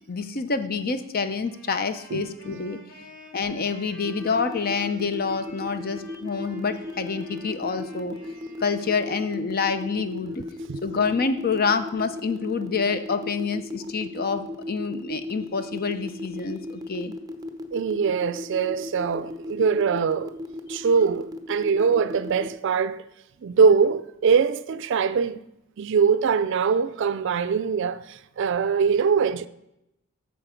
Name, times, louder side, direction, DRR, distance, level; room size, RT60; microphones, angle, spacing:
voice 1, 0.1-2.8 3.3-8.2 8.6-10.4 10.8-17.1, left 4 dB, 45° left, 0.7 m, -27 dB
Wind instrument woodwind instrument, 1.4-9.6, left 1 dB, 90° left, 3.7 m, -50 dB
voice 2, 2.1-2.6 10.7-10.8 17.7-20.3 20.7-23.0 23.4-25.4 25.8-29.5, right 6 dB, 60° right, 0.4 m, -22 dB
sound 1, 4.0-22.5, left 2 dB, 20° right, 0.8 m, -35 dB
9.2 x 6.5 x 5.0 m
head